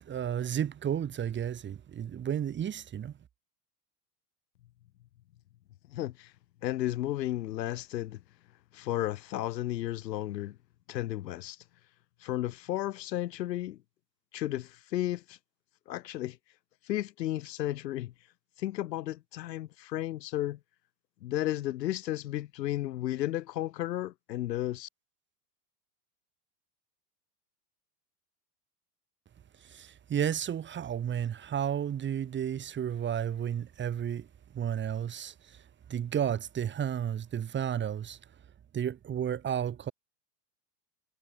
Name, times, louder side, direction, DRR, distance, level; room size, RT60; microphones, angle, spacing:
voice 1, 0.0-3.1 29.6-34.3 34.5-35.6 35.9-38.2 38.7-39.9, right 9 dB, 20° right, 5.8 m, -32 dB
voice 2, 5.9-6.3 6.6-8.2 8.7-10.6 10.9-11.6 12.2-13.8 14.3-15.4 15.9-16.4 16.8-18.1 18.6-20.6 21.2-24.9, left 14 dB, 90° left, 2.6 m, -33 dB
supercardioid pair, 150°, 48 cm